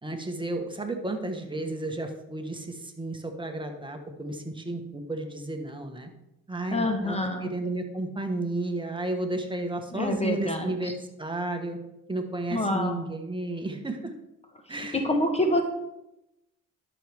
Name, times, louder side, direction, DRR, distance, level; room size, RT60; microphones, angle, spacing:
voice 1, 0.0-6.1 6.5-10.9 11.2-11.8 12.1-14.1 14.7-15.0, right 2 dB, 15° right, 4 dB, 1.3 m, -32 dB
voice 2, 6.7-7.5 9.9-10.9 12.5-13.0 14.9-15.6, left 1 dB, 20° left, 5 dB, 1.0 m, -26 dB
11.5 x 6.4 x 3.5 m, 0.89 s
cardioid pair, 90°, 30 cm